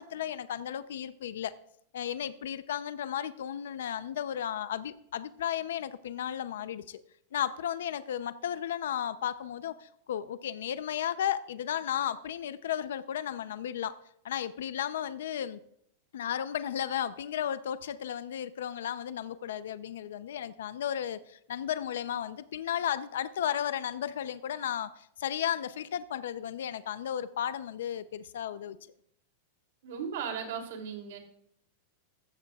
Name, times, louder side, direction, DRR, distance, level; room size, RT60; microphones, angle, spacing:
voice 1, 0.0-1.5 1.9-7.0 7.3-13.9 14.2-15.6 16.1-28.8, left 10 dB, 90° left, 13 dB, 0.6 m, -34 dB
voice 2, 29.8-31.2, right 7 dB, 65° right, 3 dB, 3.0 m, -36 dB
15.0 x 14.5 x 2.4 m, 0.69 s
supercardioid pair, 175°, 0 cm